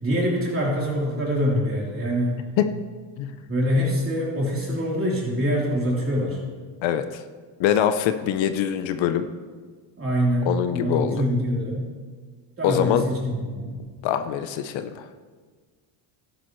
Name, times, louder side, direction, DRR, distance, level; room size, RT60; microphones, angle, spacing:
voice 1, 0.0-2.4 3.5-6.4 10.0-11.8 12.6-13.8, equal, 25° right, -4 dB, 3.6 m, -24 dB
voice 2, 6.8-7.2 7.6-9.3 10.4-11.2 12.6-13.0 14.0-15.1, left 10 dB, 70° left, 9 dB, 0.8 m, -23 dB
13.0 x 10.5 x 3.2 m, 1.5 s
cardioid pair, 105°, 48 cm